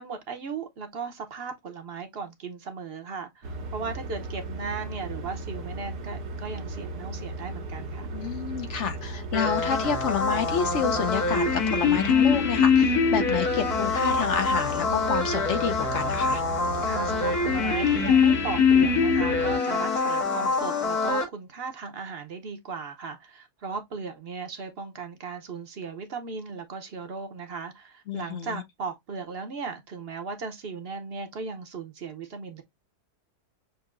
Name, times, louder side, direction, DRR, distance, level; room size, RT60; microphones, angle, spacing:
voice 1, 0.0-8.1 16.8-32.6, right 5 dB, 50° right, 0.8 m, -36 dB
sound 1, 3.4-19.6, right 2 dB, 85° right, 1.5 m, -36 dB
voice 2, 8.1-16.4 28.1-28.6, left 7 dB, 60° left, 0.8 m, -29 dB
sound 2, 9.3-21.2, left 5 dB, 75° left, 1.7 m, -24 dB
6.6 x 2.7 x 2.4 m
omnidirectional pair, 1.7 m